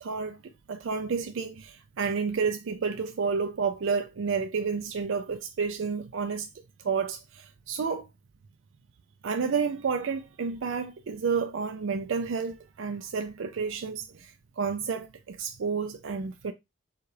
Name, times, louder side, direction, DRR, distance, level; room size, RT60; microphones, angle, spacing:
voice 1, 0.0-6.5 6.8-8.1 9.2-16.5, right 5 dB, 70° right, 0.4 m, -30 dB
6.9 x 2.4 x 3.3 m
head